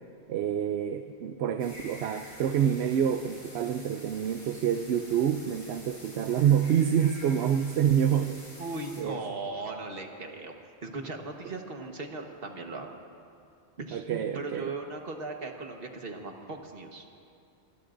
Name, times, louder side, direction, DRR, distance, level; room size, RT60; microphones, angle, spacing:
voice 1, 0.3-8.4 9.0-9.2 13.9-14.7, right 9 dB, 80° right, 8 dB, 0.8 m, -27 dB
sound 1, 1.6-9.0, left 1 dB, 55° left, 5.3 m, -48 dB
voice 2, 8.6-10.5 10.8-12.9 13.8-17.0, right 3 dB, 60° right, 3 dB, 1.5 m, -38 dB
25.0 x 21.0 x 2.6 m, 2.4 s
omnidirectional pair, 1.1 m